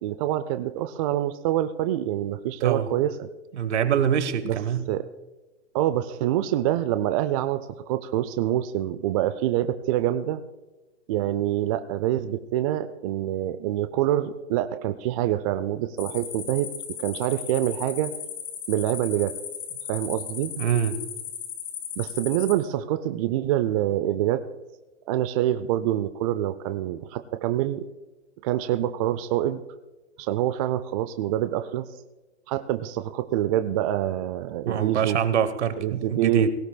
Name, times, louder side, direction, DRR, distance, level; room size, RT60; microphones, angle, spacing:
voice 1, 0.0-3.3 4.4-4.6 4.9-5.1 5.7-10.4 11.1-16.7 17.0-18.1 18.7-19.4 19.9-20.5 22.0-24.5 25.1-27.8 28.4-29.6 30.2-31.9 32.5-35.2 35.8-36.5, right 13 dB, 30° right, 11 dB, 0.4 m, -26 dB
voice 2, 3.6-4.8 20.6-21.0 34.7-36.5, right 8 dB, 70° right, 12 dB, 1.2 m, -24 dB
sound 1, 16.0-22.6, left 8 dB, 65° left, 3.9 m, -36 dB
18.0 x 17.5 x 2.2 m, 1.1 s
hypercardioid pair, 125°, 35 cm